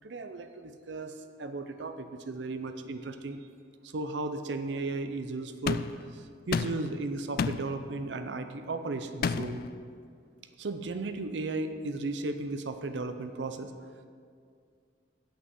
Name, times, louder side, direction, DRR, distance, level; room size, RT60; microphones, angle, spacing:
voice 1, 0.0-1.1 1.4-3.4 3.9-5.8 6.5-9.6 10.6-13.7, right 3 dB, 70° right, 7 dB, 0.6 m, -35 dB
sound 1, 5.7-6.0 6.5-6.9 7.4-7.7 9.2-9.7, left 5 dB, 55° left, 0.3 m, -30 dB
8.2 x 6.2 x 7.9 m, 2.2 s
head